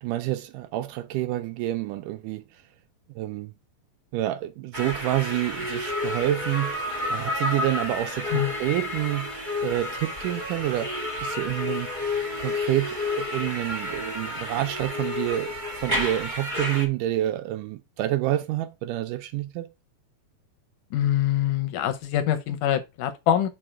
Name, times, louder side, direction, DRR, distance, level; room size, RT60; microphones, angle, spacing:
voice 1, 0.0-2.6 3.2-3.5 4.1-6.8 7.1-9.3 9.6-11.9 12.4-19.7, right 15 dB, 80° right, 2.0 m, -28 dB
sound 1, 4.7-16.8, left 2 dB, 25° right, 1.0 m, -30 dB
voice 2, 20.9-23.5, left 11 dB, 75° left, 2.1 m, -24 dB
6.3 x 4.7 x 4.4 m
omnidirectional pair, 4.0 m